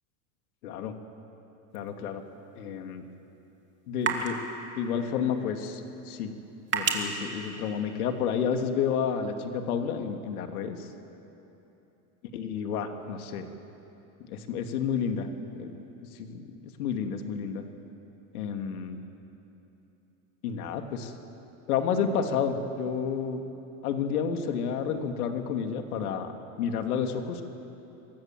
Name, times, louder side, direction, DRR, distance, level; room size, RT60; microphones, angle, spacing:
voice 1, 0.6-0.9 1.7-2.2 2.6-3.0 3.9-4.4 4.7-6.3 6.7-10.9 12.3-13.5 14.3-15.3 15.5-15.7 16.0-17.6 18.3-19.0 20.4-21.1 21.7-23.4 23.8-26.3 26.6-27.4, left 7 dB, 85° left, 5 dB, 2.6 m, -30 dB
sound 1, 1.7-8.4, right 5 dB, 25° right, 2.6 m, -36 dB
26.5 x 23.0 x 7.6 m, 3.0 s
supercardioid pair, 145°, 43 cm